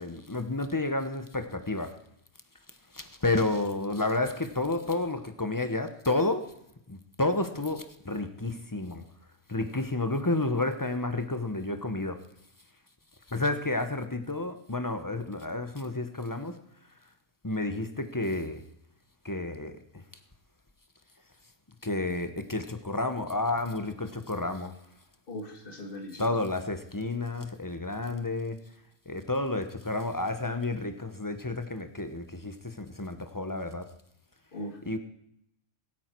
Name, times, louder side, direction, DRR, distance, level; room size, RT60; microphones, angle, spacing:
voice 1, 0.0-2.0 2.9-6.5 6.9-9.0 9.5-12.2 13.3-16.6 17.4-18.6 19.2-19.8 21.8-24.8 26.2-28.6 29.0-33.9 34.9-35.0, left 2 dB, 15° left, 7 dB, 1.0 m, -31 dB
voice 2, 25.3-26.5 34.5-35.0, left 1 dB, 45° left, 2 dB, 2.3 m, -40 dB
23.0 x 8.9 x 4.6 m, 0.75 s
omnidirectional pair, 1.3 m